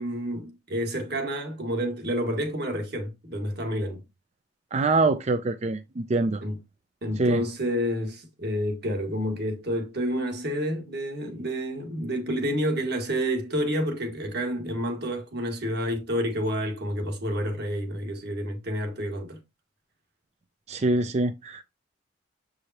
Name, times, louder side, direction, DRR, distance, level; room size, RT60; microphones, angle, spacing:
voice 1, 0.0-4.0 6.4-6.6 7.0-19.4, equal, 55° right, 1.7 m, -29 dB
voice 2, 4.7-6.4 7.2-7.4 20.7-21.6, right 2 dB, 35° right, 0.4 m, -24 dB
7.5 x 4.8 x 2.8 m
head